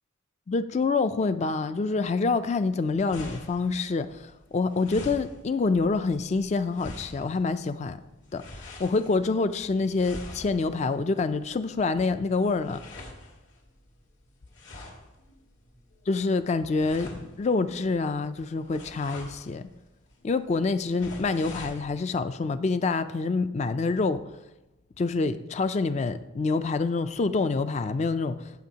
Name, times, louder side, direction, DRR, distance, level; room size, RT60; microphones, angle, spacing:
voice 1, 0.5-8.0 8.3-12.8 16.1-19.6 20.2-24.2 25.0-28.5, left 3 dB, 35° left, 12 dB, 0.3 m, -27 dB
sound 1, 2.5-21.8, left 1 dB, 75° left, 2.3 m, -46 dB
15.0 x 7.8 x 2.8 m, 0.98 s
head